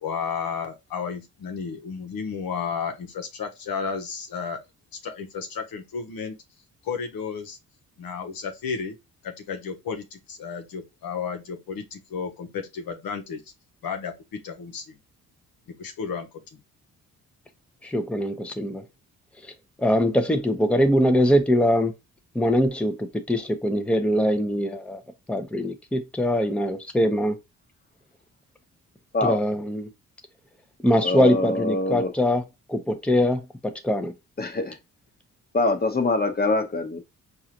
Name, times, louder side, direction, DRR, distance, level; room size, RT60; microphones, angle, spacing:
voice 1, 0.0-4.6 5.0-6.3 6.8-7.6 8.0-9.0 9.2-13.4 13.8-14.9 15.8-16.6, left 6 dB, 70° left, 1.0 m, -32 dB
voice 2, 17.8-18.8 19.8-21.9 22.3-25.0 25.3-27.4 29.2-29.9 30.8-32.4 32.7-33.4 33.8-34.1, equal, 5° left, 0.8 m, -22 dB
voice 3, 31.0-32.1 34.4-34.8 35.5-37.0, left 2 dB, 25° left, 1.1 m, -24 dB
4.8 x 2.6 x 2.9 m
supercardioid pair, 60°, 37 cm